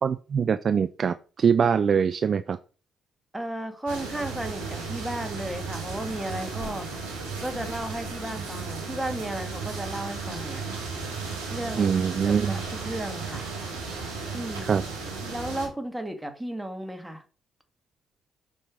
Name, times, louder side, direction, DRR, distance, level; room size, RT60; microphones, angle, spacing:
voice 1, 0.0-2.6 11.8-12.6 14.6-14.8, right 6 dB, 50° right, 0.4 m, -23 dB
voice 2, 3.3-6.9 7.4-10.9 11.5-11.9 12.2-13.5 13.8-14.0 14.3-14.7 15.2-17.2, right 1 dB, 10° right, 2.1 m, -34 dB
sound 1, 3.9-15.7, right 4 dB, 85° right, 2.9 m, -35 dB
7.3 x 5.3 x 5.0 m
figure-of-eight pair, 45°, 0 cm